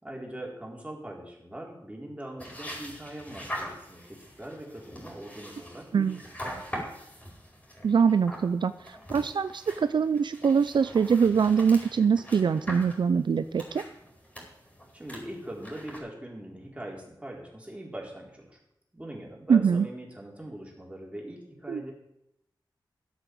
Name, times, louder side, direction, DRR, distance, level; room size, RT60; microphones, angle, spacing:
voice 1, 0.0-6.2 14.9-18.6 18.9-21.9, right 1 dB, 15° right, -2 dB, 4.0 m, -41 dB
sound 1, 2.4-16.0, equal, 15° left, 4.7 m, -43 dB
voice 2, 7.8-13.8 19.5-19.9 21.7-21.8, right 6 dB, 70° right, 12 dB, 0.5 m, -23 dB
12.5 x 8.3 x 7.8 m, 0.82 s
wide cardioid pair, 95°, 8 cm